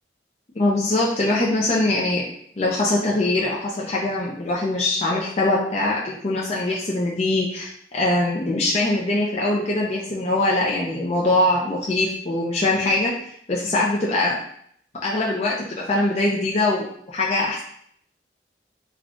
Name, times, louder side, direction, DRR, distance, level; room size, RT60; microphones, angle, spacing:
voice 1, 0.6-2.2 2.6-13.1 13.5-14.4 15.0-17.6, left 2 dB, 35° left, -4 dB, 0.5 m, -22 dB
3.6 x 2.3 x 3.7 m, 0.66 s
head